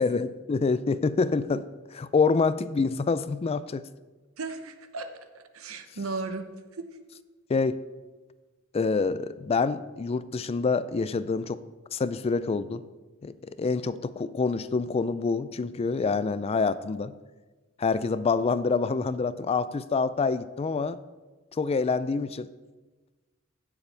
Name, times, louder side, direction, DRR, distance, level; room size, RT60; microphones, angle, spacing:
voice 1, 0.0-1.6 1.9-3.8 7.5-7.8 8.7-11.6 11.9-12.8 13.2-17.1 17.8-21.0 21.6-22.5, left 4 dB, 30° left, 15 dB, 0.3 m, -26 dB
voice 2, 4.4-5.1 5.3-6.9, right 3 dB, 80° right, 8 dB, 0.9 m, -36 dB
15.5 x 7.0 x 3.4 m, 1.2 s
head